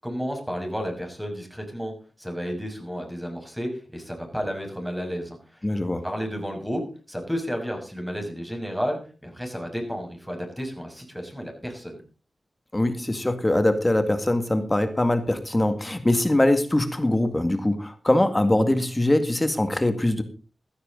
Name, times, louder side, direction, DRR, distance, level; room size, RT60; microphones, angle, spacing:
voice 1, 0.0-1.9 2.2-5.6 6.0-12.0, equal, ahead, 3 dB, 6.0 m, -32 dB
voice 2, 5.6-6.0 12.7-20.2, left 1 dB, 20° left, 9 dB, 2.0 m, -22 dB
15.5 x 13.0 x 4.0 m, 0.36 s
cardioid pair, 70°, 0 cm